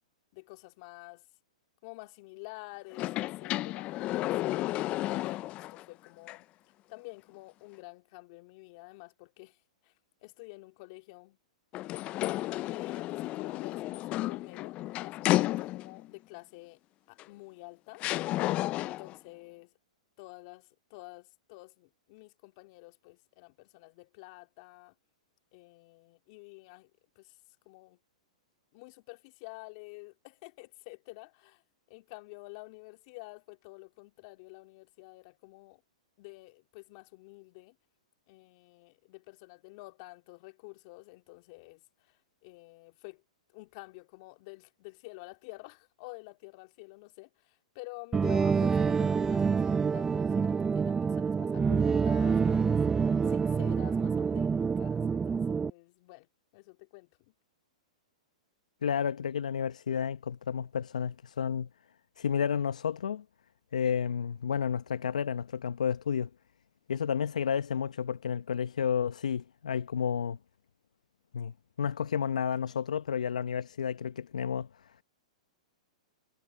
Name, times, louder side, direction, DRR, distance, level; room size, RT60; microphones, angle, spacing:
voice 1, 0.3-1.2 1.8-6.5 6.9-9.6 9.8-9.9 10.2-11.4 12.7-16.8 17.1-18.0 18.8-19.7 20.2-24.9 25.5-26.9 27.2-27.4 27.7-28.0 28.7-31.6 31.9-35.8 36.2-37.8 38.3-43.2 43.5-52.8 53.3-56.3 56.5-57.1, left 26 dB, 50° left, 2.5 m, -49 dB
sound 1, 2.9-5.8 6.3-6.4 11.7-16.1 17.2-17.3 18.0-19.2, left 16 dB, 35° left, 0.5 m, -32 dB
sound 2, 48.1-55.7, right 5 dB, 15° right, 0.7 m, -27 dB
voice 2, 58.8-61.7 62.2-63.2 63.7-66.3 66.9-70.4 71.3-74.7, left 7 dB, 80° left, 0.9 m, -31 dB
hypercardioid pair, 125°, 4 cm